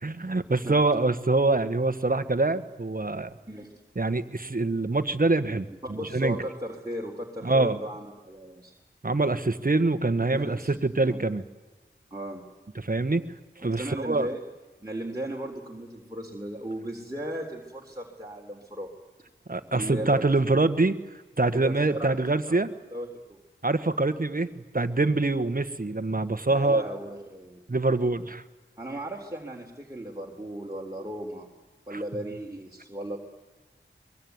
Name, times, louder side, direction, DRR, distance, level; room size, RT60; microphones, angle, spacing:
voice 1, 0.0-3.3 3.9-6.4 7.4-7.8 9.0-11.4 12.7-13.3 13.6-14.3 19.5-21.0 21.4-22.7 23.6-26.8 27.7-28.4 31.9-32.0, right 2 dB, 45° right, 12 dB, 1.5 m, -25 dB
voice 2, 5.9-8.7 10.3-10.7 11.0-11.2 12.1-12.4 13.8-14.4 14.8-18.9 19.7-20.3 21.5-22.6 22.9-23.4 26.5-27.6 28.8-31.5 31.9-33.2, right 1 dB, 15° right, -1 dB, 3.7 m, -36 dB
23.5 x 23.0 x 9.6 m, 1.3 s
wide cardioid pair, 45°, 20 cm